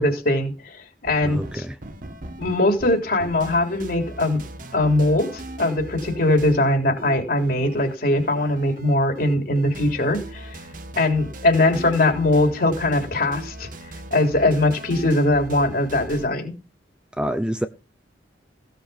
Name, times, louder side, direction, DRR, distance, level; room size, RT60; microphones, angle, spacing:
voice 1, 0.0-1.6 2.4-4.4 4.7-10.5 11.0-13.7 14.1-16.5, left 2 dB, 55° left, 3.6 m, -21 dB
sound 1, 1.0-16.3, right 1 dB, 45° right, 1.7 m, -39 dB
voice 2, 1.2-1.8 17.1-17.7, equal, 5° right, 0.6 m, -27 dB
16.5 x 6.8 x 5.8 m
head